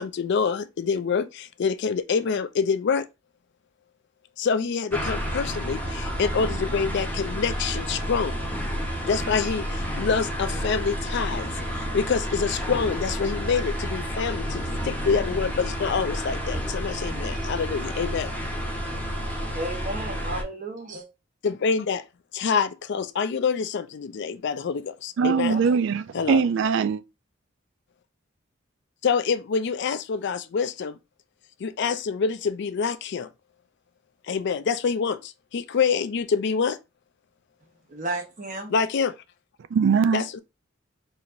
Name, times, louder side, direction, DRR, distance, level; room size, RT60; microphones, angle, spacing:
voice 1, 0.0-3.1 4.4-8.4 9.0-18.3 21.4-22.0 22.3-25.6 26.1-26.4 29.0-31.0 31.6-33.3 34.3-36.8 38.7-39.1 40.1-40.4, left 5 dB, 60° left, 0.4 m, -26 dB
sound 1, 4.9-20.4, equal, 10° left, 0.9 m, -30 dB
voice 2, 19.5-21.0 25.2-25.8 37.9-38.7, right 1 dB, 40° right, 1.1 m, -33 dB
voice 3, 25.2-27.0 39.7-40.2, right 6 dB, 65° right, 0.3 m, -21 dB
4.4 x 2.8 x 2.6 m
head